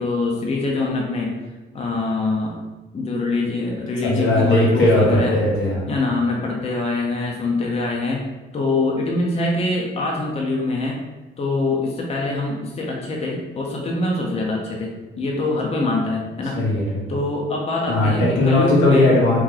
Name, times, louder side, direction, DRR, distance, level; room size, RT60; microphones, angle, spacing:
voice 1, 0.0-1.3 1.7-2.6 2.9-5.4 5.9-8.2 8.5-11.0 11.4-16.6 17.1-19.2, left 2 dB, 30° left, -1 dB, 0.6 m, -24 dB
voice 2, 4.0-5.9 16.5-17.0 17.9-19.4, left 2 dB, 80° left, -4 dB, 1.2 m, -18 dB
3.0 x 2.7 x 3.8 m, 1.2 s
cardioid pair, 90°, 20 cm